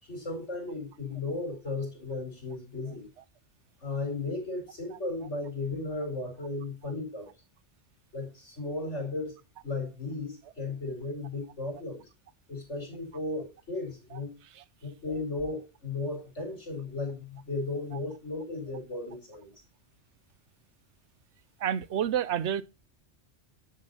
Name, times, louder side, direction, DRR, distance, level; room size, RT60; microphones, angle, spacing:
voice 1, 0.0-3.1 3.8-7.3 8.1-9.4 9.6-12.1 12.5-14.4 14.8-19.5, left 3 dB, 85° left, 4.8 m, -35 dB
voice 2, 21.6-22.6, right 9 dB, 75° right, 1.0 m, -28 dB
10.5 x 7.4 x 4.0 m
omnidirectional pair, 1.2 m